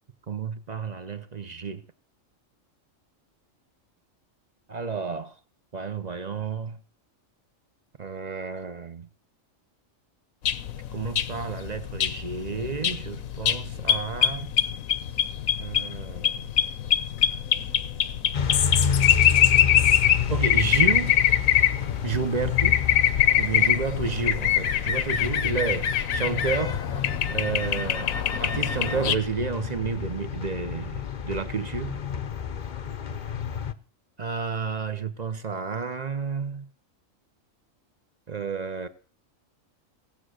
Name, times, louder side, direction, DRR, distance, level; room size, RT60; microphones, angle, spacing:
voice 1, 0.3-1.8 4.7-5.3 5.7-6.8 8.0-9.1 10.9-14.5 15.6-16.4 20.3-21.2 22.0-22.8 23.4-28.1 28.4-32.0 34.2-36.7 38.3-38.9, right 5 dB, 40° right, 0.8 m, -31 dB
sound 1, 10.4-29.1, left 10 dB, 80° left, 1.2 m, -24 dB
sound 2, 18.3-33.7, left 7 dB, 45° left, 0.7 m, -30 dB
16.5 x 7.9 x 6.4 m
omnidirectional pair, 1.4 m